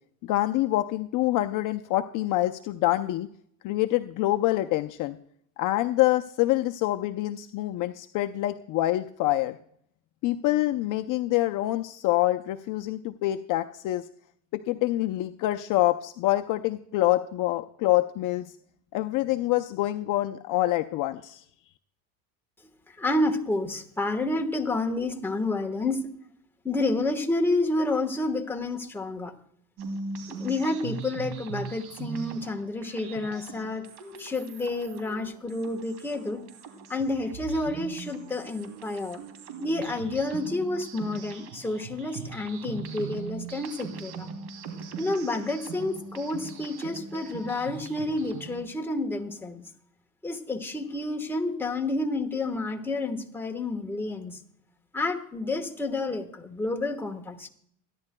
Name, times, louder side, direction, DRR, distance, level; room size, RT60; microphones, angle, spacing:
voice 1, 0.2-3.3 3.6-5.2 5.6-9.6 10.2-14.0 14.5-18.4 18.9-21.4, left 16 dB, 45° left, 7 dB, 0.6 m, -26 dB
voice 2, 23.0-26.1 26.6-29.3 30.3-33.9 34.2-36.4 36.9-39.2 39.6-44.3 45.0-49.7 50.2-54.4 54.9-57.5, left 2 dB, 5° left, 2 dB, 1.2 m, -29 dB
sound 1, 29.8-48.6, right 5 dB, 60° right, 3.0 m, -40 dB
28.0 x 10.5 x 2.2 m, 0.65 s
cardioid pair, 135°, 43 cm